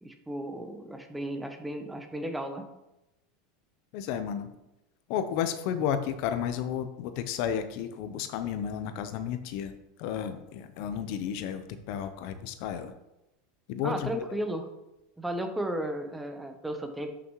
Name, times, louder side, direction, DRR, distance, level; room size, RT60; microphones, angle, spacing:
voice 1, 0.0-2.6 13.8-14.7 15.2-17.1, right 1 dB, 5° right, 6 dB, 0.8 m, -34 dB
voice 2, 3.9-4.5 5.1-9.7 10.0-12.9 13.7-14.4, left 8 dB, 60° left, 10 dB, 0.8 m, -32 dB
11.0 x 6.2 x 3.1 m, 0.92 s
supercardioid pair, 130°, 0 cm